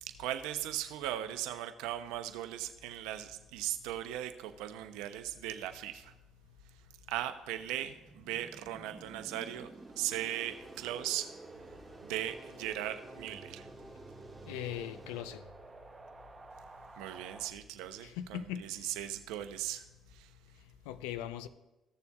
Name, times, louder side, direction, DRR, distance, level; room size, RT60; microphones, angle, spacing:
voice 1, 0.0-6.1 7.1-11.3 12.0-13.7 17.0-19.8 20.1-20.3, right 12 dB, 80° right, 0.6 m, -38 dB
Wind, 7.4-17.5, right 3 dB, 25° right, 0.8 m, -52 dB
sound 1, 9.5-15.2, right 1 dB, 5° right, 1.6 m, -54 dB
voice 2, 14.5-15.4 18.0-19.0 20.9-21.5, left 11 dB, 85° left, 0.5 m, -40 dB
15.0 x 6.9 x 2.3 m
hypercardioid pair, 60°, 0 cm